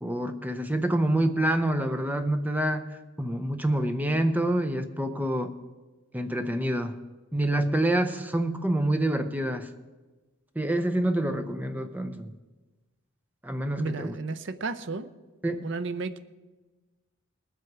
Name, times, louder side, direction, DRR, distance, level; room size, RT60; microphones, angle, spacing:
voice 1, 0.0-2.8 3.2-5.5 6.1-7.0 7.3-9.7 10.6-12.3 13.4-14.1 15.4-15.6, right 1 dB, 10° right, 8 dB, 0.6 m, -27 dB
voice 2, 13.8-15.1 15.6-16.2, right 3 dB, 60° right, 11 dB, 0.6 m, -32 dB
19.5 x 7.9 x 4.7 m, 1.2 s
head